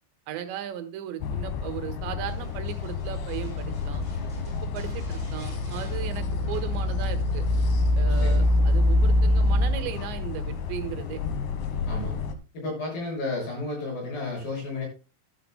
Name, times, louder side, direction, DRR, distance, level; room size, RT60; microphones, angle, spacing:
voice 1, 0.3-4.0 4.5-7.5 8.0-11.2, right 10 dB, 90° right, 8 dB, 3.5 m, -36 dB
sound 1, 1.2-12.3, left 2 dB, 80° left, 3.4 m, -26 dB
sound 2, 2.3-7.3 7.5-7.9 8.3-9.4 10.5-11.0 11.5-11.6, equal, 10° left, 7.3 m, -54 dB
voice 2, 8.1-8.5 11.9-12.2 12.5-14.9, left 2 dB, 55° left, -1 dB, 8.3 m, -32 dB
13.5 x 12.5 x 2.2 m, 0.31 s
omnidirectional pair, 5.0 m